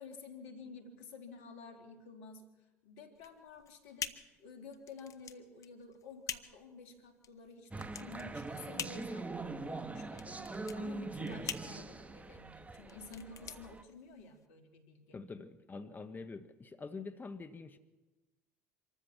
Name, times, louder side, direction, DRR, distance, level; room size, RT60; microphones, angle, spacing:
voice 1, 0.0-15.2, left 4 dB, 75° left, 5 dB, 3.1 m, -52 dB
sound 1, 3.1-14.5, left 8 dB, 45° left, 1.4 m, -46 dB
sound 2, 7.7-13.8, right 3 dB, 20° right, 1.4 m, -42 dB
voice 2, 15.1-17.8, left 4 dB, 25° left, 9 dB, 1.2 m, -45 dB
26.0 x 14.0 x 7.2 m, 1.2 s
hypercardioid pair, 65°, 8 cm